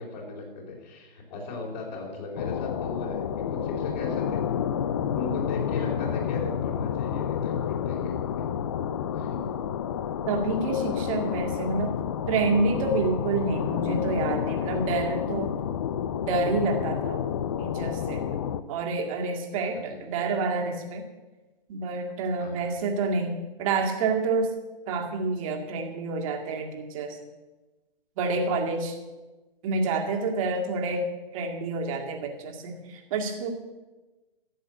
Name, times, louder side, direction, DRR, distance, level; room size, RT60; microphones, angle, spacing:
voice 1, 0.0-4.4 5.1-8.2 9.1-9.4 19.7-20.0 22.4-22.7, left 3 dB, 45° left, -1 dB, 4.7 m, -37 dB
sound 1, 2.4-18.6, left 8 dB, 30° left, 0.4 m, -30 dB
voice 2, 10.3-11.9 12.3-15.5 16.3-17.2 17.6-18.3 18.7-21.0 21.7-24.5 24.9-27.2 28.2-29.0 29.6-33.5, right 3 dB, 35° right, 2 dB, 2.1 m, -28 dB
13.5 x 7.9 x 7.9 m, 1.2 s
hypercardioid pair, 140°, 29 cm